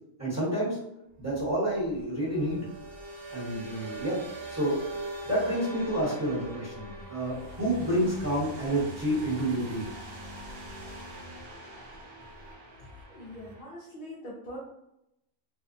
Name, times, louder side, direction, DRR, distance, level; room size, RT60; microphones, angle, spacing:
voice 1, 0.2-0.8 1.2-2.6 3.3-4.8 5.2-9.9, right 1 dB, 15° right, -9 dB, 0.9 m, -29 dB
sound 1, 1.2-13.6, right 1 dB, 55° right, 0.7 m, -42 dB
voice 2, 13.1-14.6, left 1 dB, 65° left, -4 dB, 0.5 m, -43 dB
2.7 x 2.1 x 2.5 m, 0.83 s
omnidirectional pair, 1.5 m